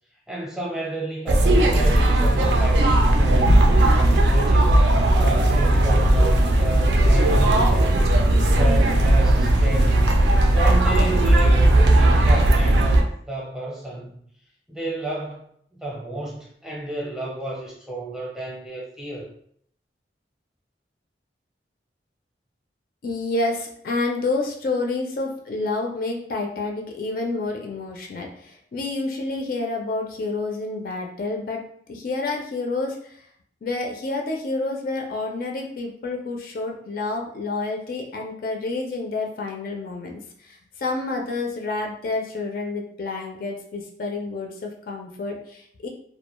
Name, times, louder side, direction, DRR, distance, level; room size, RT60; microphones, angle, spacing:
voice 1, 0.3-4.8 5.2-8.0 8.5-10.2 10.5-14.2 14.7-19.3, right 1 dB, 5° right, -4 dB, 0.6 m, -31 dB
sound 1, 1.3-13.0, right 1 dB, 75° right, 0.4 m, -17 dB
voice 2, 23.0-31.6 31.9-33.2 33.6-45.9, left 3 dB, 55° left, 1 dB, 0.3 m, -29 dB
2.3 x 2.1 x 2.9 m, 0.65 s
head